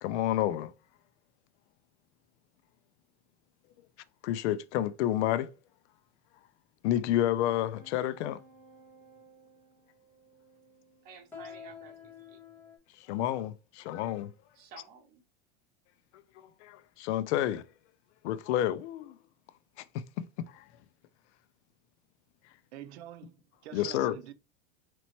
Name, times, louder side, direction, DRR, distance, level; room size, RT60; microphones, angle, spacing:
voice 1, 0.0-0.7 4.2-5.5 6.8-8.4 13.0-14.3 16.4-17.6 18.2-19.2 19.8-20.6 23.7-24.2, left 12 dB, 80° left, 0.5 m, -30 dB
sound 1, 7.7-12.8, left 5 dB, 5° left, 0.4 m, -52 dB
voice 2, 11.0-12.4 14.5-15.2, right 4 dB, 30° right, 0.8 m, -52 dB
voice 3, 22.7-24.3, right 11 dB, 70° right, 0.6 m, -46 dB
4.2 x 3.0 x 2.9 m
supercardioid pair, 180°, 34 cm